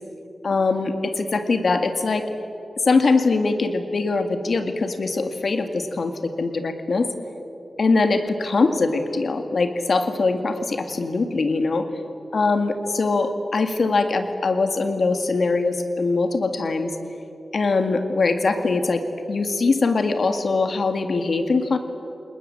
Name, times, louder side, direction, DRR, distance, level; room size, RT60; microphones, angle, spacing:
voice 1, 0.4-2.3 2.9-7.1 7.8-11.9 12.3-17.0 17.5-21.8, left 3 dB, 55° left, 7 dB, 2.0 m, -22 dB
29.5 x 20.0 x 8.9 m, 2.9 s
wide cardioid pair, 145°, 0 cm